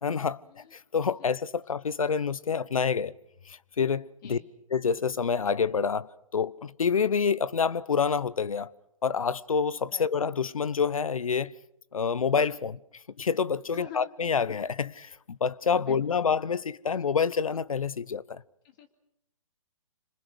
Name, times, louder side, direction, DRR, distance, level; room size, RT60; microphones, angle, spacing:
voice 1, 0.0-3.1 3.5-4.4 4.7-8.7 9.0-11.5 11.9-12.8 13.2-18.4, left 6 dB, 80° left, 0.9 m, -27 dB
voice 2, 13.7-14.1 15.6-16.2 18.6-18.9, left 7 dB, 40° left, 2.6 m, -46 dB
26.5 x 25.5 x 6.3 m
hypercardioid pair, 135°, 17 cm